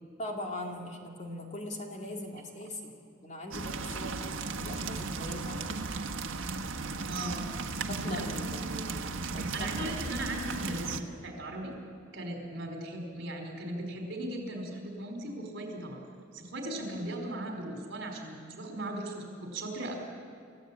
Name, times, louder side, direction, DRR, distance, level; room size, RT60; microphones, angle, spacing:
voice 1, 0.2-2.9 3.2-5.8 7.9-9.9, left 1 dB, 35° left, 1 dB, 2.6 m, -40 dB
sound 1, 3.5-11.0, right 4 dB, 85° right, 1.3 m, -35 dB
voice 2, 7.1-7.4 8.1-8.4 9.5-11.8 12.1-16.0 16.3-19.9, right 1 dB, 60° right, 2 dB, 4.8 m, -38 dB
29.5 x 14.5 x 9.0 m, 2.3 s
head